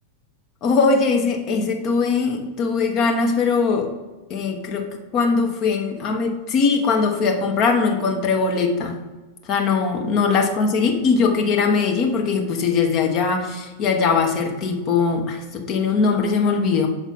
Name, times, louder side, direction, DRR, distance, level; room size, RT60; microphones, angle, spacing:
voice 1, 0.6-3.9 4.3-4.9 5.1-9.0 9.4-16.9, left 4 dB, 35° left, 2 dB, 1.0 m, -20 dB
7.2 x 3.9 x 3.9 m, 1.2 s
figure-of-eight pair, 90°, 0 cm